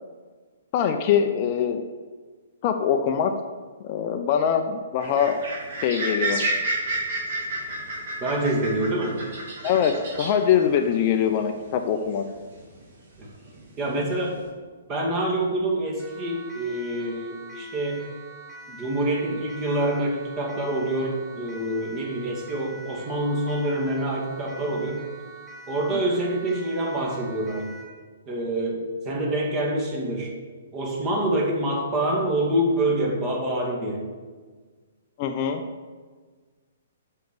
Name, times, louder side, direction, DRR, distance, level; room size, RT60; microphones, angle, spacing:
voice 1, 0.7-1.8 2.6-3.3 3.8-5.4 5.8-6.4 9.6-12.2 25.9-26.0 35.2-35.6, left 8 dB, 35° left, 6 dB, 0.7 m, -23 dB
sound 1, 5.0-12.8 13.2-14.4, right 2 dB, 50° right, 2.7 m, -31 dB
voice 2, 8.2-9.2 13.8-14.3 14.9-18.0 18.7-25.0 25.7-27.7 28.3-30.3 30.7-34.0, right 1 dB, 25° right, -2 dB, 2.4 m, -26 dB
Siren, 16.0-28.0, right 2 dB, 5° left, 3.0 m, -44 dB
7.8 x 6.5 x 6.8 m, 1.5 s
figure-of-eight pair, 120°, 0 cm